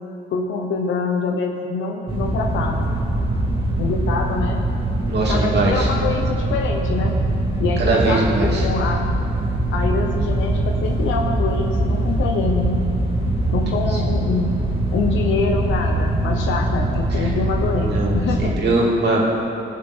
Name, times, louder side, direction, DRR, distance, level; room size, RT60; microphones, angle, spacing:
voice 1, 0.3-2.9 3.8-4.7 5.3-7.3 7.6-9.2 9.7-12.9 13.5-14.5 14.9-18.8, left 4 dB, 80° left, 1 dB, 1.0 m, -25 dB
sound 1, 2.1-18.5, right 1 dB, 25° right, 2.9 m, -22 dB
voice 2, 5.1-5.9 7.8-8.6 17.2-17.3 17.9-18.1 18.4-19.3, right 2 dB, 60° right, -3 dB, 2.9 m, -20 dB
19.5 x 7.0 x 4.5 m, 2.8 s
cardioid pair, 90°, 20 cm